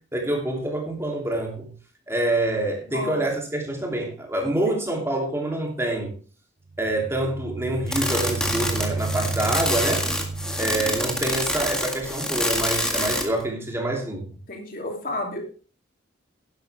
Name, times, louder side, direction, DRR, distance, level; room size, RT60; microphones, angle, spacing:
voice 1, 0.1-1.7 2.1-6.1 6.8-10.1 10.6-14.3, right 1 dB, 15° right, 0 dB, 2.9 m, -26 dB
voice 2, 2.9-3.2 4.4-4.8 14.5-15.4, left 2 dB, 45° left, 2 dB, 2.8 m, -32 dB
sound 1, 6.7-11.4, right 3 dB, 50° right, 0.8 m, -32 dB
sound 2, 7.9-13.4, left 1 dB, 5° left, 1.8 m, -26 dB
11.5 x 11.5 x 3.4 m, 0.37 s
head